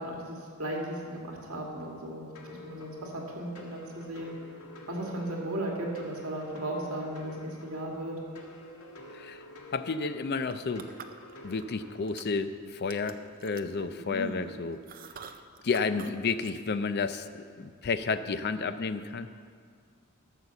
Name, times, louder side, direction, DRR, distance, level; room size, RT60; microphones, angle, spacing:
voice 1, 0.0-4.3 4.9-8.2, right 1 dB, 70° right, -1 dB, 2.1 m, -36 dB
sound 1, 2.3-12.0, left 2 dB, 90° left, 1.6 m, -49 dB
voice 2, 9.1-9.4 9.7-10.9 11.4-14.8 15.6-19.3, left 4 dB, 45° left, 11 dB, 0.5 m, -31 dB
sound 2, 10.4-11.7 12.0-12.5 12.9-16.1 16.4-16.5, right 4 dB, 40° right, 0.5 m, -43 dB
12.0 x 6.5 x 7.0 m, 2.1 s
head